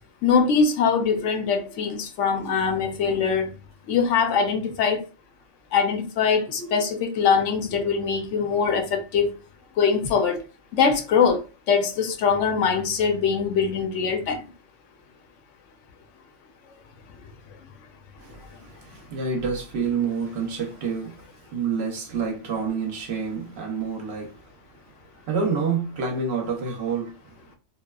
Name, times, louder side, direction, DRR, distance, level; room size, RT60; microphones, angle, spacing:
voice 1, 0.2-3.5 3.9-5.0 5.7-9.3 9.8-10.4 10.7-14.4, left 6 dB, 75° left, 0.9 m, -22 dB
voice 2, 1.1-1.8 2.2-2.3 6.5-6.8 7.7-8.0 8.4-8.5 10.9-11.0 18.2-27.5, right 5 dB, 65° right, 0.8 m, -29 dB
2.8 x 2.2 x 2.2 m
omnidirectional pair, 1.3 m